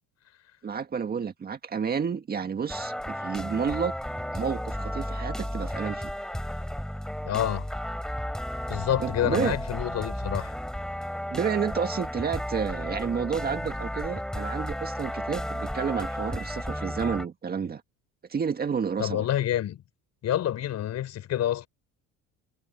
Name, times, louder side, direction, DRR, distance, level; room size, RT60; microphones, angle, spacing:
voice 1, 0.6-3.9 4.3-6.1 9.0-9.6 11.3-17.8 18.3-19.3, right 6 dB, 25° right, 1.8 m, -30 dB
sound 1, 2.7-17.2, equal, ahead, 6.7 m, -33 dB
voice 2, 7.2-7.7 8.7-10.5 19.0-19.8 20.2-21.7, left 11 dB, 50° left, 5.5 m, -28 dB
cardioid pair, 135°, 35 cm